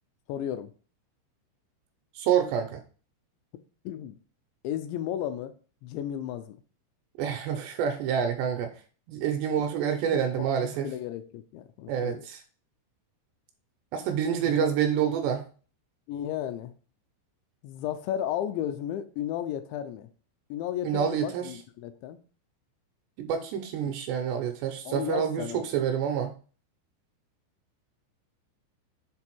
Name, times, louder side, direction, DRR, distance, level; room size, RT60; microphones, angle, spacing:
voice 1, 0.3-0.7 3.9-4.2 4.6-5.5 5.8-6.6 10.1-12.3 14.5-14.7 16.1-16.7 17.6-20.1 20.5-22.2 24.9-25.7, left 11 dB, 85° left, 2.8 m, -34 dB
voice 2, 2.2-2.8 7.2-8.7 9.1-10.9 11.9-12.4 13.9-15.5 20.8-21.5 23.2-26.3, right 8 dB, 80° right, 2.6 m, -27 dB
7.7 x 3.4 x 4.5 m
omnidirectional pair, 5.4 m